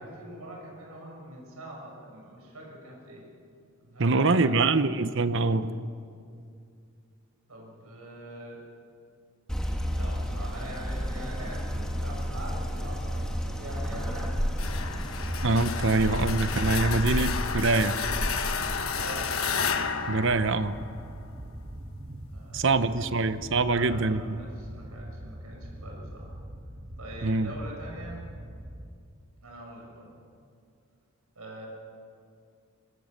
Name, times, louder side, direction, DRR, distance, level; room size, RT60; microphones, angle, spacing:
voice 1, 0.0-3.2 3.8-4.7 7.5-8.6 9.9-14.4 18.8-19.4 22.3-23.0 23.6-26.4 27.0-28.2 29.4-30.2 31.3-31.7, right 1 dB, 85° right, -2 dB, 6.2 m, -43 dB
voice 2, 4.0-5.7 15.4-18.0 20.1-20.8 22.5-24.2 27.2-27.5, right 3 dB, 55° right, 12 dB, 0.9 m, -24 dB
sound 1, 9.5-18.8, equal, 5° left, 2.0 m, -32 dB
sound 2, 11.0-28.9, right 1 dB, 25° right, 1.2 m, -42 dB
sound 3, 14.6-21.3, left 6 dB, 70° left, 1.3 m, -32 dB
23.5 x 22.0 x 6.6 m, 2.4 s
head